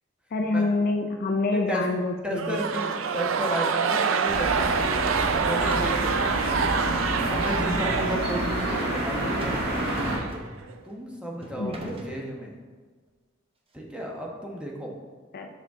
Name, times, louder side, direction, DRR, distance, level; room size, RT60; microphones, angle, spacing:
voice 1, 0.3-2.9 11.6-11.8 15.3-15.5, left 3 dB, 50° left, 4 dB, 0.5 m, -27 dB
voice 2, 1.5-1.8 2.2-4.8 5.4-6.9 7.3-9.7 10.8-12.5 13.7-14.9, equal, 5° right, -2 dB, 1.1 m, -33 dB
sound 1, 2.3-10.8, right 5 dB, 75° right, 0.4 m, -27 dB
sound 2, 4.3-10.2, right 1 dB, 50° right, 1.7 m, -28 dB
sound 3, 5.7-6.2 7.7-8.7 9.4-9.7 10.0-10.7 11.4-12.2, right 1 dB, 30° right, 0.9 m, -40 dB
6.7 x 6.4 x 3.6 m, 1.4 s
head